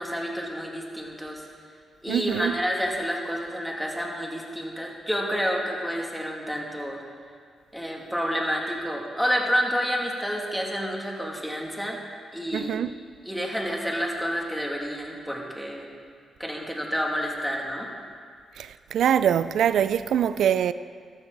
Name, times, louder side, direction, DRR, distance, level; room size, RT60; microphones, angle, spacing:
voice 1, 0.0-1.4 2.0-7.0 7.7-12.0 12.3-12.8 13.3-15.9 16.4-17.9, equal, ahead, 2.5 m, -29 dB
voice 2, 2.1-2.5 12.5-12.9 18.6-20.7, right 9 dB, 75° right, 0.4 m, -23 dB
14.0 x 13.0 x 4.0 m
cardioid pair, 65°, 0 cm